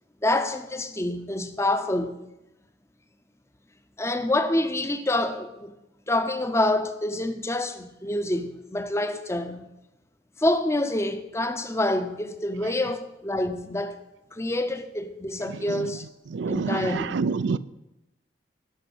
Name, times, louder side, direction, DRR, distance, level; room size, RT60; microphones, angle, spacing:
voice 1, 0.2-2.2 4.0-5.7 6.1-9.7 10.4-14.0 14.3-16.1 16.5-17.1, left 1 dB, 15° left, 0.6 m, -27 dB
voice 2, 16.3-17.6, right 4 dB, 75° right, 0.4 m, -27 dB
12.0 x 6.0 x 6.2 m
head